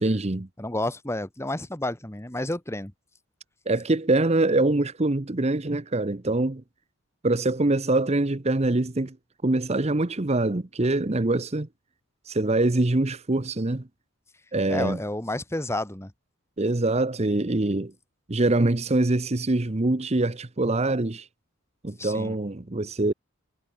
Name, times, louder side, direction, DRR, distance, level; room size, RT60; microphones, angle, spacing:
voice 1, 0.0-0.5 3.7-6.6 7.2-9.2 9.4-11.7 12.3-13.8 14.5-15.0 16.6-17.9 18.3-21.3 21.8-23.1, right 2 dB, 30° right, 0.8 m, -24 dB
voice 2, 0.6-2.9 14.7-16.1 22.0-22.3, left 1 dB, 10° left, 1.5 m, -30 dB
head